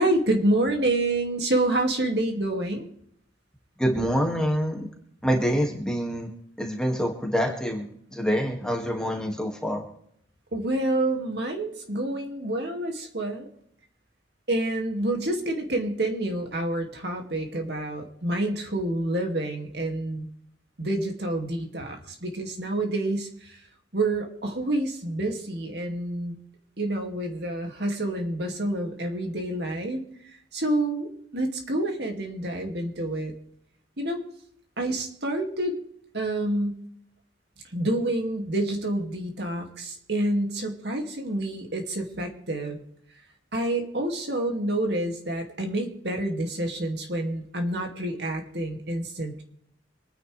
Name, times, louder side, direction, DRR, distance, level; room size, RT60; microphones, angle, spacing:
voice 1, 0.0-2.8 10.5-13.5 14.5-20.3 20.8-23.6 23.9-26.4 26.8-30.0 30.5-33.3 34.0-34.2 34.8-35.8 36.1-36.8 37.7-42.8 43.5-49.4, right 1 dB, 60° right, 3 dB, 2.6 m, -28 dB
voice 2, 3.8-4.9 5.2-6.3 6.6-9.8, equal, 5° left, 1 dB, 2.3 m, -26 dB
26.0 x 10.0 x 3.5 m, 0.70 s
head